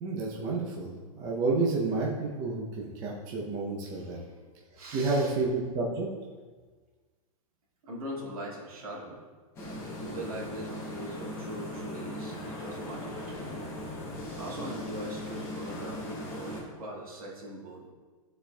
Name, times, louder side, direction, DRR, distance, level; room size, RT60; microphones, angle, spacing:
voice 1, 0.0-4.2 4.9-6.1, right 3 dB, 20° right, -3 dB, 0.6 m, -30 dB
voice 2, 3.9-4.3 4.8-5.3 7.8-9.2 10.0-13.7 14.3-17.9, right 1 dB, 80° right, -4 dB, 2.0 m, -41 dB
sound 1, 9.6-16.6, left 1 dB, 15° left, 0.8 m, -38 dB
12.5 x 4.3 x 2.3 m, 1.4 s
supercardioid pair, 170°, 19 cm